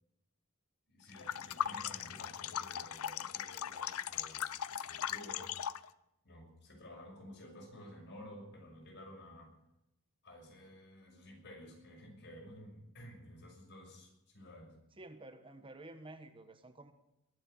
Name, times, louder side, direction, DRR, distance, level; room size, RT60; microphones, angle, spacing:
voice 1, 0.9-5.6 6.2-9.5 10.2-14.7, left 1 dB, 55° left, 1 dB, 5.8 m, -53 dB
sound 1, 1.1-5.9, left 9 dB, 75° left, 0.6 m, -39 dB
voice 2, 15.0-16.9, right 2 dB, 25° right, 8 dB, 1.1 m, -51 dB
22.0 x 8.1 x 8.0 m, 0.87 s
head